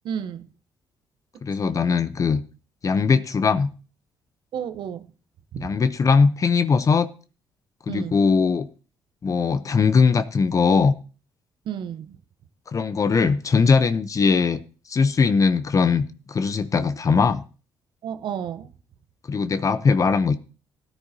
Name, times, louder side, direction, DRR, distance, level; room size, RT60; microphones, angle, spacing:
voice 1, 0.0-0.5 1.6-1.8 4.5-5.1 5.5-5.7 7.9-8.2 11.6-12.2 18.0-18.7, right 8 dB, 70° right, 0.8 m, -32 dB
voice 2, 1.4-2.4 2.8-3.7 5.6-7.1 7.9-8.7 9.2-10.9 12.7-14.6 14.9-17.4 19.3-20.4, left 5 dB, 40° left, 0.7 m, -20 dB
16.0 x 10.0 x 2.7 m
supercardioid pair, 65°, 8 cm